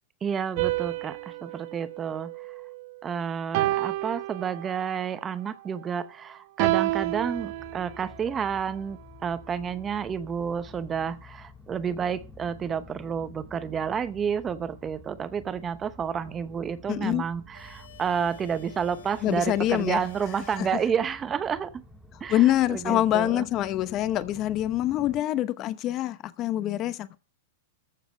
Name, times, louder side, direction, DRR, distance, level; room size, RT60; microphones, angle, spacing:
voice 1, 0.2-2.6 3.0-21.8 22.2-23.4, right 7 dB, 20° right, 0.8 m, -30 dB
sound 1, 0.6-3.0 3.5-5.0 6.6-8.3, right 18 dB, 50° right, 0.8 m, -30 dB
sound 2, 6.7-25.2, left 2 dB, ahead, 1.6 m, -50 dB
voice 2, 16.9-17.3 19.2-20.0 20.6-20.7 22.3-27.1, left 13 dB, 30° left, 0.9 m, -25 dB
sound 3, 17.5-21.4, left 10 dB, 80° left, 7.1 m, -50 dB
14.5 x 7.3 x 6.2 m
supercardioid pair, 150°, 0 cm